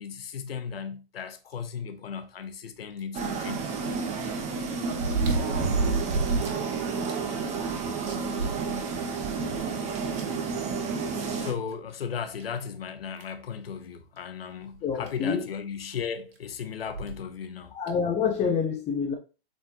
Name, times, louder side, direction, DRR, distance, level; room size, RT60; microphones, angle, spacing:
voice 1, 0.0-3.7 9.3-9.8 11.4-17.7, left 7 dB, 80° left, 1.2 m, -36 dB
sound 1, 3.0-3.1 4.9-6.6 7.0-7.1 7.6-7.7 8.1-9.2 10.2-10.3 11.7-11.8 12.4-12.5 13.2-13.4 14.7-14.8 15.1-15.2 16.9-17.2 17.9-18.0, right 3 dB, 75° right, 1.9 m, -28 dB
sound 2, 3.1-11.5, right 5 dB, 25° right, 1.1 m, -31 dB
voice 2, 14.8-15.4 17.7-19.1, left 6 dB, 20° left, 1.1 m, -27 dB
7.9 x 4.2 x 3.0 m
hypercardioid pair, 135°, 29 cm